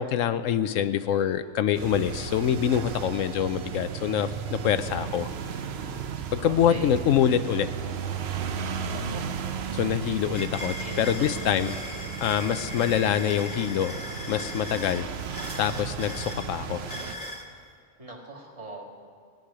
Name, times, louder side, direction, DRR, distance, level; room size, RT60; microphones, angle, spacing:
voice 1, 0.0-5.3 6.3-7.7 9.7-11.7 12.2-14.0 14.3-15.1 15.6-16.8, left 9 dB, 75° left, 12 dB, 1.0 m, -25 dB
sound 1, 1.7-17.1, right 7 dB, 60° right, 0.9 m, -35 dB
voice 2, 6.3-6.9 8.9-9.4 10.8-11.4 11.8-12.1 18.0-18.8, right 1 dB, 25° right, -1 dB, 1.9 m, -41 dB
sound 2, 8.9-9.0 9.3-17.5, left 1 dB, 60° left, 1.7 m, -39 dB
17.0 x 6.5 x 9.8 m, 2.1 s
omnidirectional pair, 1.4 m